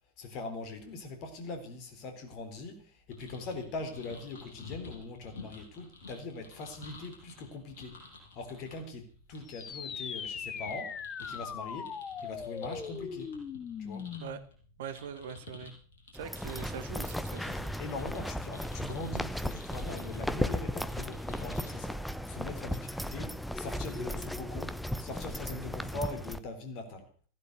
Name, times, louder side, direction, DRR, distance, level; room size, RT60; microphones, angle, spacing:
voice 1, 0.2-8.0 8.3-11.9 12.2-13.3 13.8-14.1 17.4-22.0 22.3-27.1, left 3 dB, 40° left, 6 dB, 3.9 m, -41 dB
sound 1, 3.1-21.7, left 3 dB, 60° left, 6.7 m, -52 dB
sound 2, 9.5-14.5, left 7 dB, 25° left, 1.1 m, -40 dB
voice 2, 14.8-15.7 16.1-17.5, right 8 dB, 55° right, 12 dB, 1.5 m, -42 dB
steps in Tanger building, 16.1-26.4, equal, ahead, 0.8 m, -36 dB
15.5 x 12.0 x 6.8 m, 0.43 s
figure-of-eight pair, 90°, 0 cm